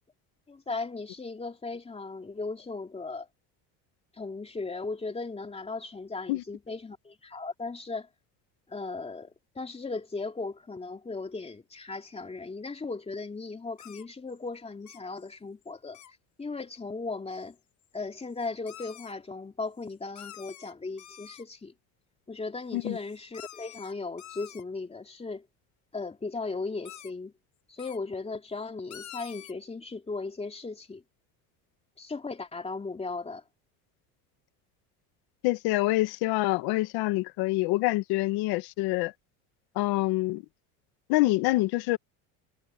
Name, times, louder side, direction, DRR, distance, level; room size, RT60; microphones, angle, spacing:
voice 1, 0.5-3.3 4.1-8.1 8.7-16.0 16.4-17.6 17.9-21.7 22.3-25.5 25.9-27.3 27.7-31.0 32.0-33.4, left 3 dB, 15° left, 2.9 m, -37 dB
sound 1, 13.8-14.4 14.9-15.3 15.6-15.7 15.9-16.1 17.5-17.6 17.8-17.9 18.2-19.1 19.8-19.9 20.2-21.5 22.9-24.6 26.8-27.1 27.8-28.0 28.9-29.5, left 11 dB, 45° left, 4.4 m, -47 dB
voice 2, 35.4-39.1 39.8-40.4 41.1-42.0, left 19 dB, 75° left, 1.8 m, -26 dB
cardioid pair, 125°, 38 cm